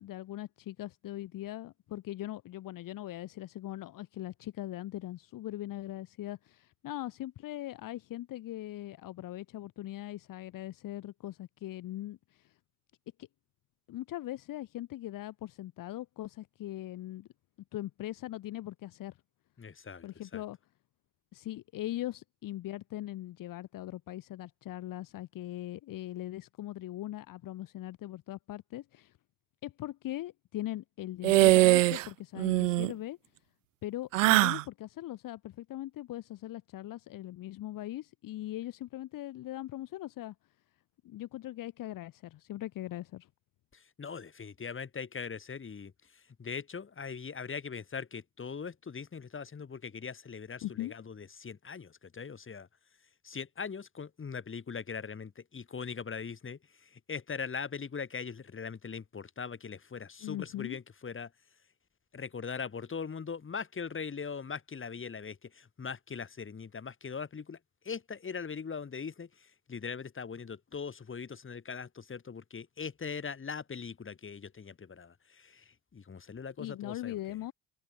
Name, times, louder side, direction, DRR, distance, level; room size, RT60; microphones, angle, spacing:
voice 1, 0.0-12.5 13.2-13.3 13.9-17.3 17.7-19.2 20.0-20.6 21.3-29.1 29.6-33.2 33.8-40.3 41.0-43.3 50.6-51.0 60.2-60.8 76.6-77.5, left 14 dB, 60° left, 3.1 m, -40 dB
voice 2, 19.6-20.1 20.3-20.4 43.7-52.7 53.2-61.3 62.1-67.6 67.9-77.2, left 6 dB, 35° left, 6.9 m, -41 dB
sound 1, 31.2-32.1 32.4-32.9 34.1-34.6, right 17 dB, 85° right, 1.0 m, -22 dB
open air
hypercardioid pair, 65°, 37 cm